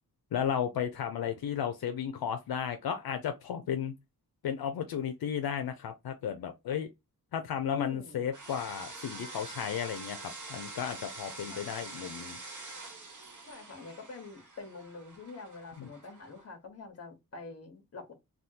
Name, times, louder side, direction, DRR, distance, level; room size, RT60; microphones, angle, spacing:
voice 1, 0.3-3.9 4.4-6.9 7.3-12.4 15.8-15.9, left 8 dB, 75° left, 0.5 m, -34 dB
voice 2, 7.7-8.2 11.5-12.0 13.4-18.1, left 3 dB, 40° left, 1.1 m, -45 dB
sound 1, 8.3-16.4, right 3 dB, 55° right, 1.2 m, -45 dB
3.5 x 2.3 x 2.7 m
wide cardioid pair, 140°, 37 cm